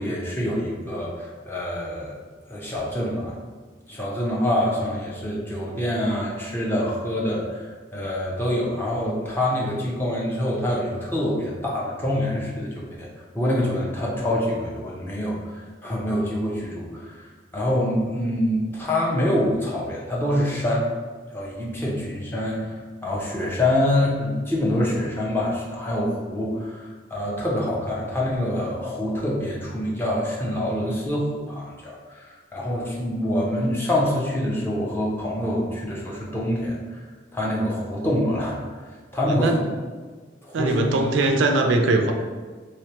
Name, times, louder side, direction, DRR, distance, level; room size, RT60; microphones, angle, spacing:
voice 1, 0.0-2.2 2.5-3.3 3.9-13.1 13.3-20.9 21.3-36.8 37.3-38.6 39.1-39.7 40.4-40.8, left 1 dB, 10° left, -4 dB, 0.5 m, -26 dB
voice 2, 39.3-39.6 40.5-42.1, right 2 dB, 75° right, 4 dB, 0.4 m, -21 dB
3.2 x 3.1 x 2.9 m, 1.4 s
head